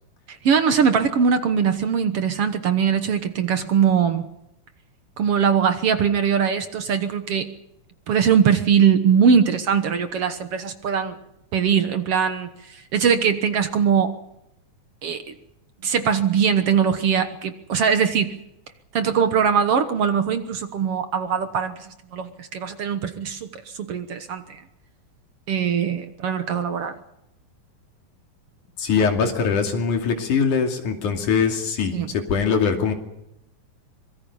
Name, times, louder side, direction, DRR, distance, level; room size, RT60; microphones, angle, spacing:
voice 1, 0.3-4.3 5.2-7.5 8.1-11.2 11.5-14.1 15.0-15.2 15.8-18.3 18.9-24.6 25.5-26.9 31.9-32.1, right 7 dB, 55° right, 9 dB, 2.0 m, -21 dB
voice 2, 28.8-32.9, left 6 dB, 80° left, 4 dB, 4.1 m, -22 dB
25.0 x 23.0 x 5.5 m, 0.84 s
omnidirectional pair, 3.5 m